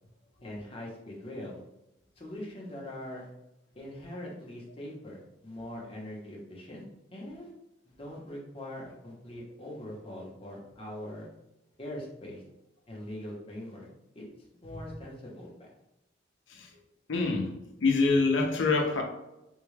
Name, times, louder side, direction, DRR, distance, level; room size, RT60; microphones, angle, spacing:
voice 1, 0.4-1.6 2.2-3.3 3.7-6.8 7.1-7.5 7.8-11.3 11.8-12.4 12.9-13.9 14.1-14.2 14.6-15.7, left 1 dB, 30° left, 0.8 m, -42 dB
voice 2, 17.1-17.5 17.8-19.0, left 3 dB, 90° left, 0.6 m, -25 dB
3.6 x 2.3 x 3.2 m
head